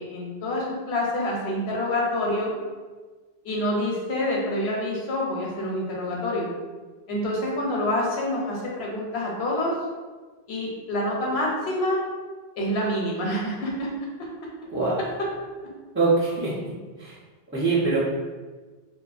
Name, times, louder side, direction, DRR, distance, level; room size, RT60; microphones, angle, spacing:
voice 1, 0.0-2.5 3.4-6.5 7.1-9.7 10.5-12.0 12.6-13.9, left 1 dB, 90° left, -3 dB, 0.9 m, -27 dB
voice 2, 14.7-15.0 15.9-16.5 17.0-17.1 17.5-18.0, right 3 dB, 20° right, -11 dB, 0.4 m, -23 dB
2.6 x 2.3 x 2.4 m, 1.3 s
omnidirectional pair, 1.0 m